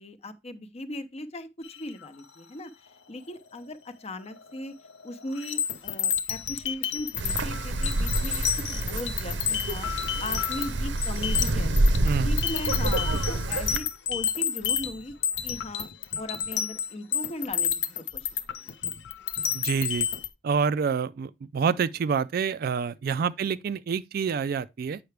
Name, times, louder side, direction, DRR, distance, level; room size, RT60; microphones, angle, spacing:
voice 1, 0.0-2.7 3.1-4.7 5.0-11.7 12.2-15.1 15.4-15.9 16.2-18.7 23.4-23.5, left 1 dB, 35° left, 0.7 m, -38 dB
sound 1, 1.6-2.2 4.3-4.6 4.8-20.3, left 8 dB, 80° left, 0.7 m, -30 dB
Wind, 7.2-13.8, right 1 dB, 85° right, 0.8 m, -27 dB
voice 2, 19.5-20.1 20.4-25.0, right 6 dB, 55° right, 0.3 m, -27 dB
7.9 x 5.7 x 3.3 m
head